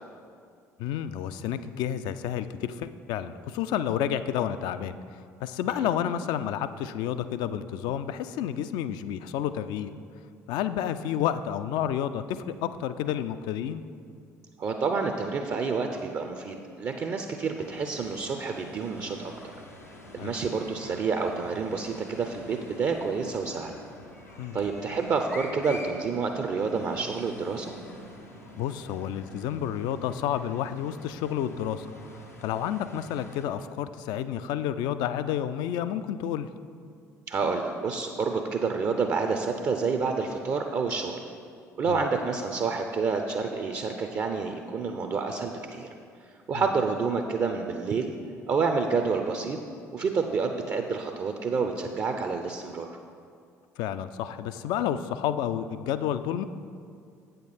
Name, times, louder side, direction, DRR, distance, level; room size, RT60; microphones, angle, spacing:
voice 1, 0.8-5.0 5.4-9.9 10.5-13.8 20.2-20.4 24.4-24.6 28.6-31.9 32.4-36.5 41.9-42.0 46.5-46.6 53.8-56.4, left 10 dB, 60° left, 12 dB, 0.3 m, -30 dB
voice 2, 14.6-19.5 20.1-23.7 24.5-27.7 37.3-41.2 41.8-45.9 46.5-48.1 48.5-49.6 49.9-52.9, right 4 dB, 40° right, 5 dB, 0.5 m, -29 dB
sound 1, 17.6-33.5, left 1 dB, 90° left, 0.7 m, -47 dB
8.2 x 6.6 x 4.1 m, 2.3 s
figure-of-eight pair, 50°, 8 cm